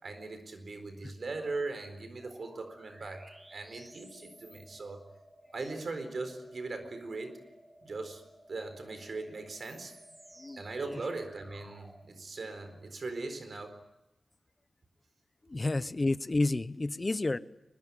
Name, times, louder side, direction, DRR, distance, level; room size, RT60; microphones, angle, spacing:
voice 1, 0.0-3.2 3.5-5.0 5.5-7.4 7.8-8.2 8.5-9.9 10.6-13.8 15.5-15.6, right 3 dB, 70° right, 9 dB, 4.3 m, -39 dB
sound 1, 2.2-12.1, right 1 dB, 20° right, 2.9 m, -56 dB
voice 2, 15.5-17.4, left 2 dB, 35° left, 15 dB, 0.9 m, -30 dB
24.0 x 21.0 x 10.0 m, 0.95 s
cardioid pair, 60°, 0 cm